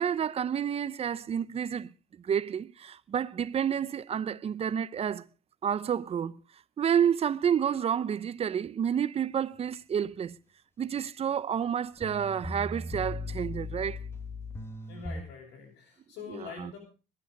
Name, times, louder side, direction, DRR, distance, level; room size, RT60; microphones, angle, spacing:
voice 1, 0.0-1.9 2.2-5.3 5.6-6.3 6.8-10.4 10.8-14.0 16.6-16.7, right 8 dB, 35° right, 0.7 m, -29 dB
sound 1, 11.7-11.8 12.0-15.2, left 2 dB, 15° left, 1.8 m, -38 dB
voice 2, 14.9-16.8, left 5 dB, 85° left, 6.7 m, -44 dB
22.0 x 9.1 x 5.2 m
cardioid pair, 110°, 17 cm